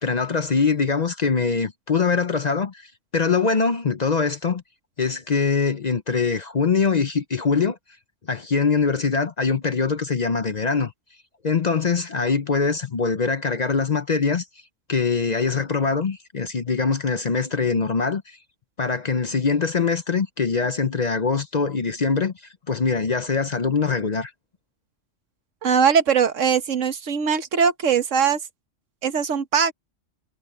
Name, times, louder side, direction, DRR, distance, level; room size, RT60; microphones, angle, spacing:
voice 1, 0.0-4.6 5.0-7.8 8.3-10.9 11.4-14.5 14.9-18.4 18.8-24.3, left 5 dB, 40° left, 0.7 m, -23 dB
voice 2, 25.6-28.4 29.0-29.7, right 7 dB, 80° right, 1.5 m, -20 dB
omnidirectional pair, 1.3 m